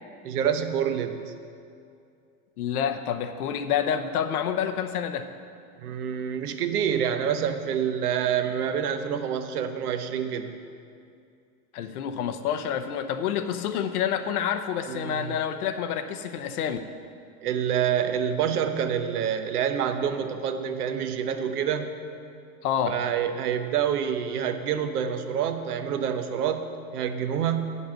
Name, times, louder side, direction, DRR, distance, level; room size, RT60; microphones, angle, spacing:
voice 1, 0.2-1.2 5.8-10.5 14.9-15.3 17.4-21.9 22.9-27.8, right 8 dB, 85° right, 8 dB, 0.9 m, -27 dB
voice 2, 2.6-5.3 11.7-16.8 22.6-23.0, left 8 dB, 85° left, 8 dB, 0.8 m, -28 dB
8.1 x 5.5 x 7.4 m, 2.4 s
supercardioid pair, 125°, 44 cm